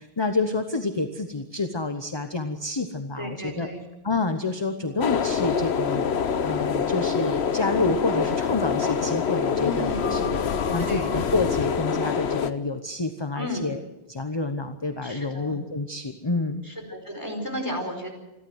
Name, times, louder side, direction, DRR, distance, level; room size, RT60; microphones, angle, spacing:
voice 1, 0.0-3.7 4.0-6.1 6.4-10.4 10.7-13.8 14.1-16.6, left 3 dB, 25° left, 7 dB, 1.0 m, -28 dB
voice 2, 3.2-3.8 4.8-4.9 9.6-10.5 10.8-11.1 13.3-13.7 15.0-15.6 16.6-18.1, equal, 20° right, 2 dB, 4.8 m, -33 dB
sound 1, 5.0-12.5, left 6 dB, 80° left, 1.2 m, -25 dB
28.0 x 12.0 x 7.9 m, 0.97 s
omnidirectional pair, 1.1 m